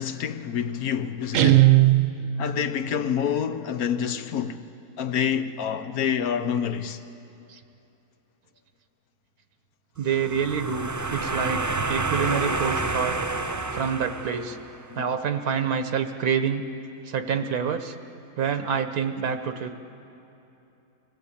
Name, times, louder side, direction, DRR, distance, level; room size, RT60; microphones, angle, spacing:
voice 1, 0.0-1.8 2.4-4.6 5.0-7.0 14.9-15.1, left 8 dB, 90° left, 1.4 m, -27 dB
Guitar, 1.3-2.6, right 15 dB, 70° right, 1.1 m, -18 dB
voice 2, 10.0-11.6 11.9-13.2 13.7-14.6 14.9-16.6 17.0-17.9 18.4-19.7, right 7 dB, 85° right, 1.5 m, -27 dB
sound 1, 10.1-14.8, right 3 dB, 30° right, 0.3 m, -29 dB
25.5 x 18.0 x 8.6 m
omnidirectional pair, 1.5 m